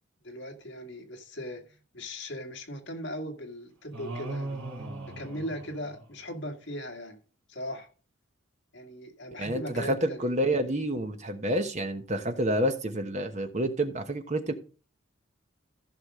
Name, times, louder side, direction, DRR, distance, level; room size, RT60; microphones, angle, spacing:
voice 1, 0.2-1.6 1.9-4.6 5.2-7.2 7.5-7.9 8.7-10.3, equal, 55° left, 2.1 m, -38 dB
sound 1, 3.9-6.4, right 2 dB, 65° right, 3.3 m, -38 dB
voice 2, 9.4-14.5, right 1 dB, 35° right, 1.1 m, -29 dB
15.0 x 6.2 x 3.7 m
head